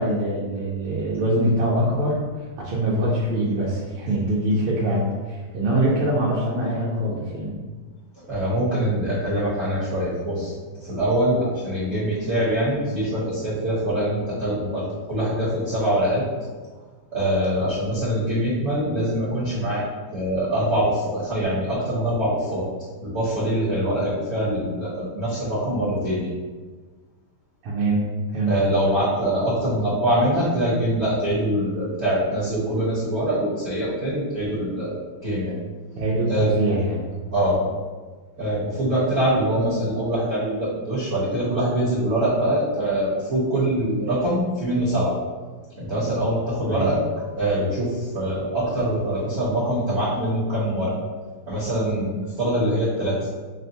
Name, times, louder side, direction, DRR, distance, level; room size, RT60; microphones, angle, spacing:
voice 1, 0.0-7.6 27.6-28.0 28.3-28.5 35.9-37.0 46.6-46.9, right 1 dB, 85° right, -6 dB, 1.6 m, -23 dB
voice 2, 8.2-16.2 17.1-19.8 20.1-22.7 23.0-26.3 28.5-35.5 36.3-36.6 37.3-37.7 38.4-45.2 45.8-50.9 51.5-53.3, right 1 dB, 45° right, -9 dB, 0.9 m, -24 dB
6.3 x 2.2 x 2.7 m, 1.4 s
omnidirectional pair, 2.4 m